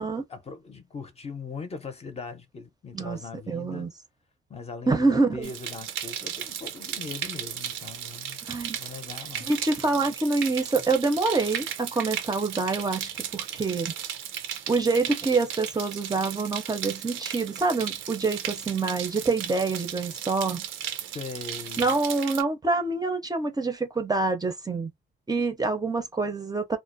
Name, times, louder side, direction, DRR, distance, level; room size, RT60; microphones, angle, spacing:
voice 1, 0.0-3.9 4.5-8.4 8.7-9.5 21.1-22.0, left 4 dB, 30° left, 0.6 m, -40 dB
voice 2, 3.5-3.9 4.9-5.5 8.5-8.8 9.5-13.9 14.7-20.6 21.8-24.9 25.3-26.8, right 3 dB, 20° right, 0.5 m, -26 dB
sound 1, 5.4-22.4, right 9 dB, 90° right, 0.5 m, -35 dB
2.4 x 2.0 x 2.5 m
cardioid pair, 90°, 20 cm